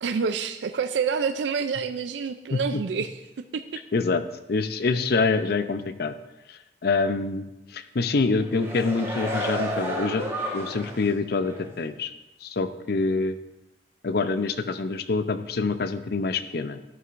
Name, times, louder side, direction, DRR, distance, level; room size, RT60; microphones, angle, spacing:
voice 1, 0.0-3.2 3.5-3.8, right 6 dB, 85° right, 9 dB, 0.4 m, -27 dB
voice 2, 2.5-2.8 3.9-4.2 4.5-6.1 6.5-10.3 10.5-12.1 12.4-13.4 14.0-16.8, left 3 dB, 60° left, 11 dB, 0.6 m, -26 dB
sound 1, 8.3-11.1 11.5-11.6, equal, 15° right, 1.8 m, -31 dB
12.5 x 9.9 x 2.5 m, 0.98 s
head